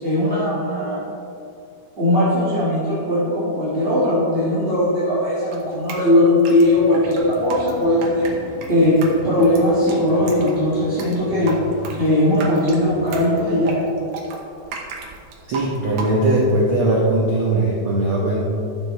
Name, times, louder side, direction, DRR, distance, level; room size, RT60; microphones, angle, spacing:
voice 1, 0.0-1.0 2.0-8.3 8.7-8.9 9.2-11.5 12.0-13.8, left 1 dB, 25° right, -11 dB, 1.5 m, -19 dB
Drip, 5.5-16.5, right 4 dB, 80° right, 2.7 m, -35 dB
sound 1, 6.6-13.8, left 2 dB, 75° left, 2.9 m, -38 dB
voice 2, 15.5-18.4, right 1 dB, 65° right, -4 dB, 1.3 m, -19 dB
13.5 x 7.0 x 3.2 m, 2.6 s
omnidirectional pair, 3.7 m